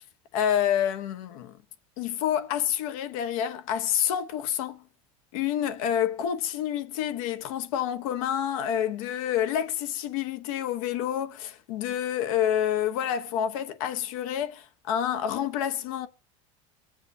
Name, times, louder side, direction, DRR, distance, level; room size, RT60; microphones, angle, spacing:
voice 1, 0.3-1.5 2.0-4.8 5.3-16.1, left 10 dB, 75° left, 1.1 m, -28 dB
22.0 x 7.6 x 2.7 m
supercardioid pair, 120°, 18 cm